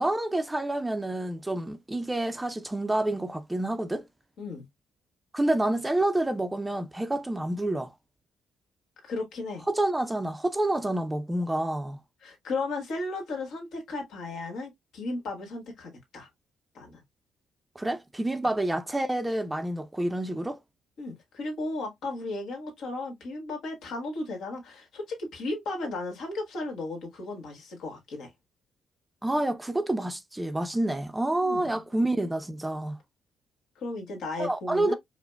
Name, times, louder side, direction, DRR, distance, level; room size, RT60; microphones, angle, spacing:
voice 1, 0.0-4.1 5.3-7.9 9.7-12.0 17.8-20.6 29.2-33.0 34.4-34.9, right 1 dB, 10° right, 0.5 m, -28 dB
voice 2, 9.0-9.6 12.2-16.3 16.7-17.0 21.0-28.3 31.4-31.7 33.7-34.9, left 2 dB, 75° left, 1.6 m, -35 dB
4.8 x 2.1 x 2.3 m
cardioid pair, 90°, 0 cm